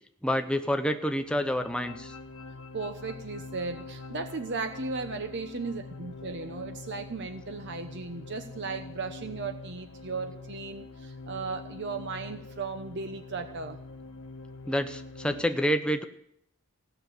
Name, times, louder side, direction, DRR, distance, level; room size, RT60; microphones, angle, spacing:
voice 1, 0.2-2.1 14.7-16.0, equal, 5° left, 7 dB, 0.8 m, -28 dB
sound 1, 1.1-15.4, left 3 dB, 85° left, 1.3 m, -44 dB
voice 2, 2.7-13.8, right 4 dB, 55° right, 8 dB, 0.9 m, -36 dB
16.0 x 6.9 x 9.4 m, 0.74 s
head